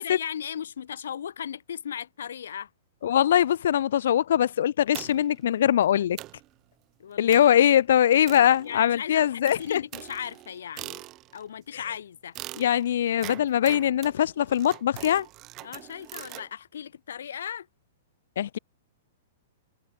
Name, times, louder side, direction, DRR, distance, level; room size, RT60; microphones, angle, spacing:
voice 1, 0.0-2.7 7.0-7.5 8.6-11.0 11.3-12.4 15.6-17.7, left 8 dB, 80° left, 7.3 m, -37 dB
voice 2, 3.0-6.2 7.2-9.8 12.6-15.3 18.4-18.6, left 10 dB, 65° left, 0.3 m, -22 dB
Plastic Knife Buzz, 4.9-5.4 5.8-5.9 6.2-6.5 7.3-7.6 8.3-9.0 9.5-11.5 12.4-16.5, right 18 dB, 25° right, 2.7 m, -43 dB
hypercardioid pair, 170°, 0 cm